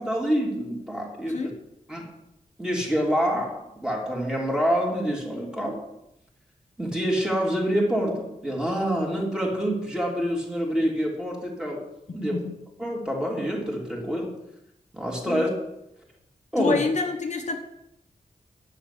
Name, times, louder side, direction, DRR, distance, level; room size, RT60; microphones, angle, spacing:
voice 1, 0.0-1.5 1.9-2.1 2.6-5.8 6.8-11.9 12.1-12.4 12.8-14.3 14.9-15.5 16.5-16.8, equal, 5° right, -2 dB, 3.0 m, -26 dB
voice 2, 12.1-12.6 15.3-15.5 16.6-17.6, left 4 dB, 50° left, 4 dB, 1.1 m, -28 dB
10.0 x 6.7 x 8.4 m, 0.85 s
wide cardioid pair, 135°, 15 cm